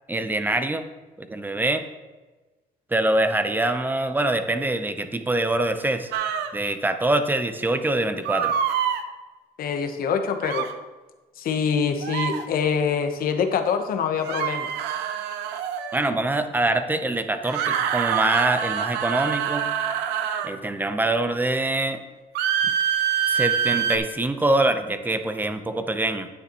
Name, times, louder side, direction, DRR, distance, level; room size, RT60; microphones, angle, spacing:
voice 1, 0.1-0.8 1.2-1.8 2.9-6.1 6.5-8.5 15.9-19.6 20.4-22.0 23.3-26.3, right 2 dB, 10° right, 8 dB, 0.7 m, -24 dB
sound 1, 6.1-6.5 8.3-9.0 10.4-10.7 12.0-12.4 14.2-16.1 17.4-20.5 22.4-24.0, right 8 dB, 90° right, 0.7 m, -25 dB
voice 2, 9.6-10.7 11.4-14.7, left 6 dB, 60° left, 6 dB, 1.1 m, -25 dB
10.0 x 8.9 x 3.0 m, 1.2 s
cardioid pair, 110°, 17 cm